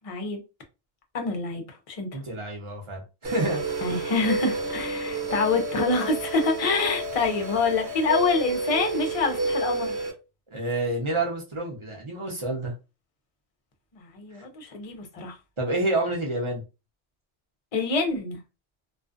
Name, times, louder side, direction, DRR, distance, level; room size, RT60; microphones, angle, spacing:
voice 1, 0.0-0.4 1.1-2.1 3.8-10.1 13.9-15.4 17.7-18.4, left 4 dB, 40° left, 0.5 m, -26 dB
voice 2, 2.1-3.9 10.5-12.7 15.6-16.6, right 2 dB, 30° right, 0.7 m, -28 dB
sound 1, 3.2-10.1, right 2 dB, 65° right, 1.1 m, -30 dB
2.4 x 2.4 x 2.4 m
omnidirectional pair, 1.2 m